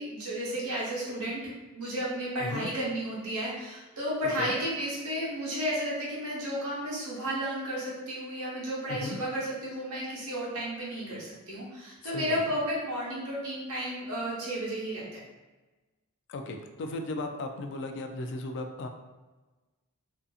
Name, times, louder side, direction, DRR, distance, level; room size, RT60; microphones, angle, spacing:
voice 1, 0.0-15.2, equal, 80° right, -5 dB, 1.0 m, -33 dB
voice 2, 2.4-2.7 4.2-4.6 8.9-9.2 12.0-12.4 16.3-18.9, left 2 dB, 55° left, 5 dB, 0.3 m, -36 dB
2.6 x 2.5 x 2.4 m, 1.2 s
head